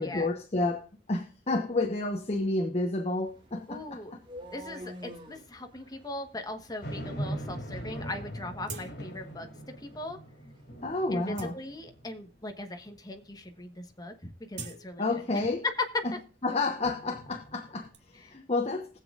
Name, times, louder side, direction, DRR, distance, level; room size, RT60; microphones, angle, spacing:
voice 1, 0.0-4.2 10.8-11.5 15.0-15.6 16.0-16.1 16.4-19.0, left 2 dB, 40° left, 1.1 m, -30 dB
sound 1, 3.2-11.2, equal, 30° right, 2.3 m, -51 dB
voice 2, 3.7-4.1 4.5-9.5 9.8-10.2 11.1-15.0 15.6-16.0, left 2 dB, 20° left, 1.3 m, -38 dB
sound 2, 6.8-12.4 12.9-13.0 16.8-17.9, equal, 60° left, 3.2 m, -41 dB
sound 3, 8.6-9.3 9.7-9.9 10.5-10.6 11.1-12.2 12.9-13.0 13.3-13.6 13.9-15.7 16.0-18.0, right 4 dB, 80° right, 1.8 m, -47 dB
20.0 x 7.4 x 2.5 m
head